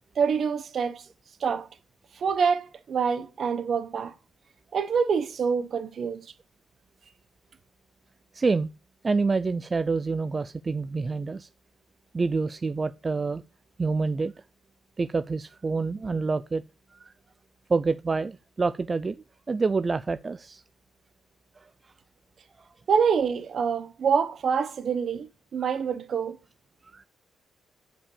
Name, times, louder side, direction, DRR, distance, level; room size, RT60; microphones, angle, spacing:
voice 1, 0.2-1.0 1.4-1.7 2.2-4.1 4.7-6.3 22.9-26.4, right 6 dB, 55° right, 0.9 m, -26 dB
voice 2, 8.3-8.7 9.0-11.5 12.1-13.4 13.8-14.3 15.0-16.6 16.9-17.1 17.7-19.2 19.5-20.6 21.6-21.7 26.9-27.0, right 4 dB, 30° right, 0.3 m, -27 dB
7.1 x 5.1 x 7.1 m
cardioid pair, 90°, 0 cm